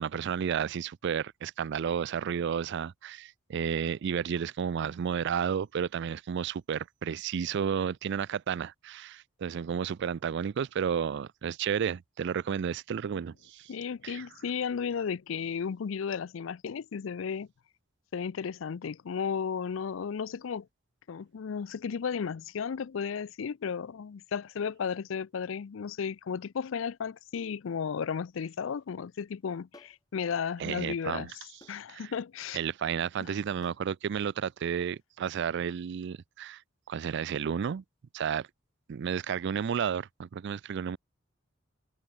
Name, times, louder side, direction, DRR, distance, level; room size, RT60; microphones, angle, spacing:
voice 1, 0.0-13.7 14.0-14.3 30.6-31.3 31.9-32.1 32.5-36.6 36.9-37.8 38.1-38.5 38.9-41.0, right 7 dB, 60° right, 0.4 m, -32 dB
voice 2, 13.7-17.5 18.1-20.7 21.1-31.3 31.7-32.6, left 6 dB, 70° left, 0.4 m, -34 dB
sound 1, 29.7-30.0 31.6-31.8 33.6-33.9, left 2 dB, 20° left, 2.6 m, -54 dB
head